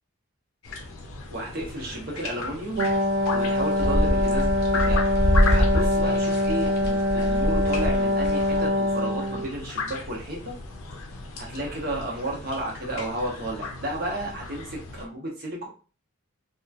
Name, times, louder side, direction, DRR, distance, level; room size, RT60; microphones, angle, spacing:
sound 1, 0.6-15.1, left 3 dB, 85° left, 0.5 m, -36 dB
voice 1, 1.3-2.9 3.3-4.5 4.8-5.1 5.4-10.5 11.4-15.7, right 1 dB, 45° right, -1 dB, 0.8 m, -33 dB
Wind instrument woodwind instrument, 2.8-9.5, left 1 dB, 75° right, 0.4 m, -24 dB
sound 2, 3.2-8.7, equal, 45° left, 0.6 m, -25 dB
2.9 x 2.1 x 2.3 m, 0.37 s
head